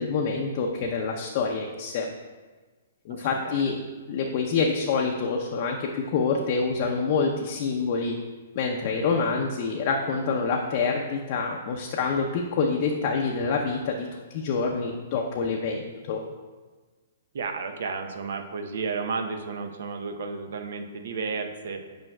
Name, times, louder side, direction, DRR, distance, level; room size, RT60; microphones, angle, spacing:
voice 1, 0.0-2.1 3.0-3.8 4.1-8.2 8.5-14.1 14.3-16.2, left 4 dB, 45° left, 1 dB, 0.6 m, -26 dB
voice 2, 3.1-3.7 17.3-21.8, right 4 dB, 65° right, 6 dB, 0.7 m, -32 dB
8.9 x 5.4 x 2.3 m, 1.3 s
figure-of-eight pair, 120°, 0 cm